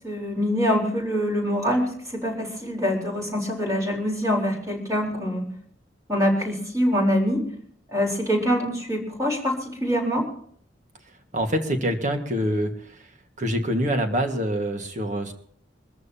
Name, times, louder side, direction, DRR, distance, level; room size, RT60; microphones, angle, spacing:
voice 1, 0.0-5.4 6.1-7.4 7.9-10.3, equal, 20° right, -1 dB, 4.1 m, -24 dB
voice 2, 11.3-13.1 13.4-15.3, equal, 40° right, 5 dB, 1.7 m, -25 dB
24.0 x 14.0 x 2.9 m, 0.62 s
head